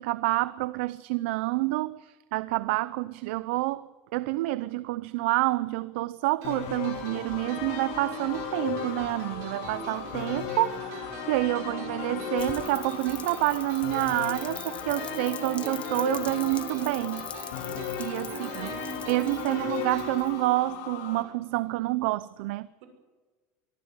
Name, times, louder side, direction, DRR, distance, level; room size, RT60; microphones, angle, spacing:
voice 1, 0.0-3.8 4.1-17.3 18.0-18.7 19.1-22.7, right 19 dB, 85° right, 0.6 m, -28 dB
sound 1, 6.4-21.2, left 9 dB, 65° left, 3.3 m, -36 dB
sound 2, 6.4-21.2, right 5 dB, 55° right, 5.0 m, -43 dB
Rain, 12.4-20.5, left 7 dB, 20° left, 1.2 m, -44 dB
voice 2, 18.3-19.7 22.8-22.9, right 4 dB, 70° right, 6.2 m, -42 dB
23.5 x 15.0 x 9.7 m
cardioid pair, 175°, 6 cm